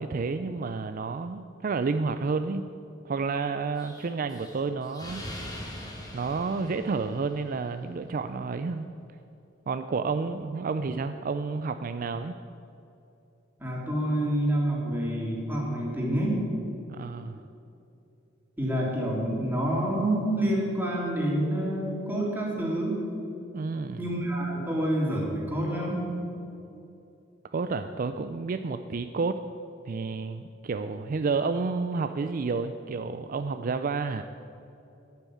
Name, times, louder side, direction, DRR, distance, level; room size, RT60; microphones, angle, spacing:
voice 1, 0.0-2.7 3.0-5.2 6.1-8.9 9.7-12.3 16.9-17.4 23.5-24.0 27.5-29.4 29.9-34.2, right 4 dB, 45° right, 9 dB, 0.4 m, -30 dB
Explosion, 3.8-7.6, left 1 dB, 20° left, 2.4 m, -42 dB
voice 2, 13.6-16.4 18.6-23.0 24.0-26.1, right 1 dB, 10° right, -4 dB, 3.1 m, -28 dB
10.5 x 9.2 x 8.4 m, 2.7 s
head